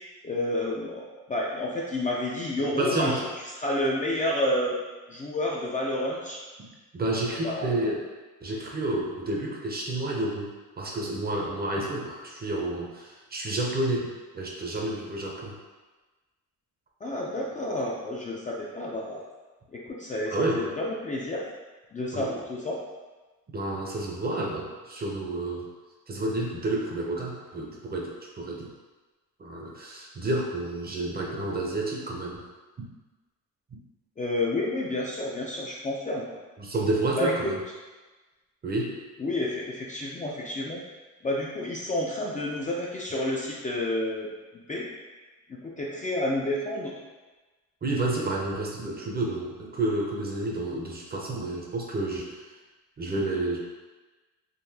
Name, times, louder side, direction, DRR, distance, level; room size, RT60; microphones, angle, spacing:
voice 1, 0.2-3.3 3.6-4.8 5.1-6.4 7.4-7.8 17.0-19.2 19.7-21.4 21.9-22.8 34.2-36.3 37.2-37.5 39.2-40.8 41.2-44.3 44.7-44.8 45.5-46.9, left 1 dB, 20° left, -4 dB, 0.4 m, -30 dB
voice 2, 2.7-3.2 6.6-8.0 8.4-14.1 14.3-15.5 20.3-20.7 22.1-22.4 23.5-25.7 26.1-28.7 29.4-32.4 32.8-32.9 36.6-37.6 38.6-38.9 47.8-52.3 53.0-53.6, right 2 dB, 25° right, -2 dB, 0.6 m, -30 dB
3.9 x 2.5 x 2.7 m, 1.2 s
cardioid pair, 110°, 35 cm